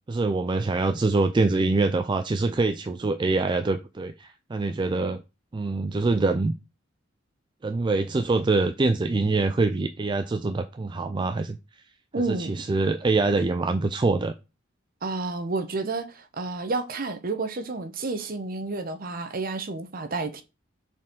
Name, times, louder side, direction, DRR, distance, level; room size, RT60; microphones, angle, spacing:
voice 1, 0.1-5.2 5.5-6.5 7.6-11.6 12.4-14.3, right 3 dB, 25° right, 0.3 m, -24 dB
voice 2, 12.1-12.6 15.0-20.4, right 3 dB, 45° right, 0.8 m, -30 dB
6.2 x 4.2 x 3.7 m
head